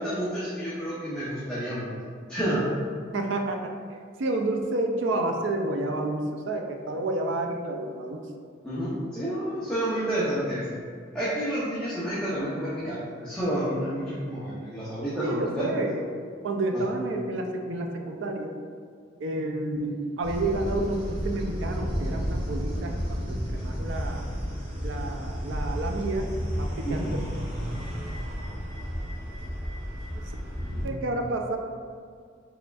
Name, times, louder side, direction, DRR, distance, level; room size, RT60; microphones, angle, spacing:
voice 1, 0.0-1.9 2.3-2.7 8.6-10.8 11.1-15.8 16.7-16.8 26.8-27.1 30.6-31.0, right 1 dB, 5° left, -11 dB, 0.7 m, -30 dB
voice 2, 3.1-3.7 4.2-8.2 15.2-16.1 16.4-18.5 19.2-24.2 24.8-26.3 26.6-27.2 27.7-27.8 30.8-31.6, right 2 dB, 70° right, 3 dB, 0.4 m, -30 dB
sound 1, 20.2-30.8, equal, 40° right, 1.5 m, -32 dB
4.8 x 3.4 x 2.3 m, 2.1 s
head